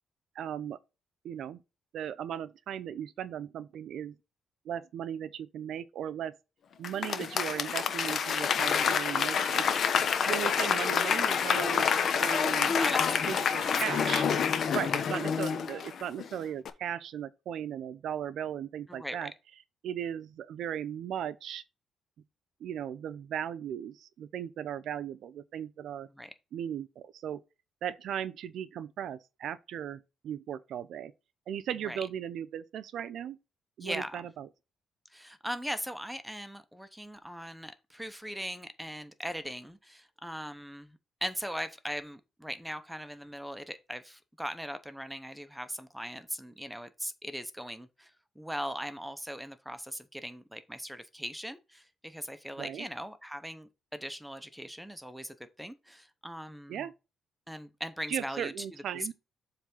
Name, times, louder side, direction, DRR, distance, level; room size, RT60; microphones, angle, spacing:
voice 1, 0.3-0.8 1.2-1.6 1.9-4.1 4.6-6.3 6.8-9.6 10.2-11.9 12.2-12.7 13.3-14.2 14.7-19.3 19.8-21.6 22.6-26.1 26.5-27.4 27.8-31.1 31.5-33.4 33.8-34.5 52.6-52.9 56.7-56.9 58.1-59.1, right 9 dB, 75° right, 0.6 m, -37 dB
Applause / Crowd, 6.8-16.3 16.6-16.7, left 7 dB, 55° left, 0.9 m, -28 dB
voice 2, 12.6-13.7 14.0-14.1 14.8-14.9 18.9-19.3 26.1-26.3 31.8-32.0 33.8-34.3 35.1-56.9 57.5-58.7 58.9-59.1, equal, ahead, 0.8 m, -40 dB
7.4 x 3.4 x 5.4 m
cardioid pair, 105°, 0 cm